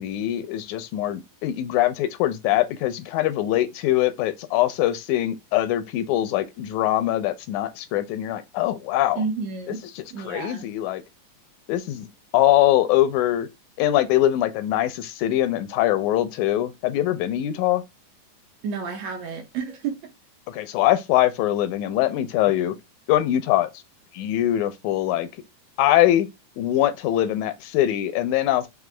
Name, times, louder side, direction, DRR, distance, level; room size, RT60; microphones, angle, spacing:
voice 1, 0.0-9.2 9.7-11.0 11.7-12.1 12.3-13.5 13.8-17.8 20.5-22.8 23.1-23.7 24.1-25.3 25.8-26.3 26.6-28.7, left 13 dB, 85° left, 1.9 m, -22 dB
voice 2, 9.2-9.8 10.1-10.7 18.6-20.0, right 5 dB, 70° right, 1.9 m, -30 dB
5.8 x 2.0 x 3.2 m
omnidirectional pair, 3.4 m